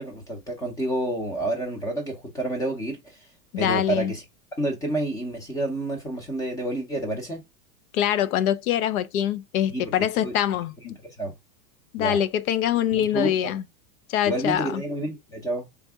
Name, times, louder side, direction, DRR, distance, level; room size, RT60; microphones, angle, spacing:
voice 1, 0.0-3.2 3.6-4.2 4.6-7.4 9.7-10.3 10.9-11.3 12.0-12.2 12.9-13.5 14.3-15.7, right 1 dB, 5° left, 0.6 m, -29 dB
voice 2, 3.5-4.1 7.9-11.0 11.9-13.6 14.1-14.8, left 10 dB, 65° left, 0.5 m, -24 dB
3.5 x 2.6 x 3.5 m
supercardioid pair, 145°, 47 cm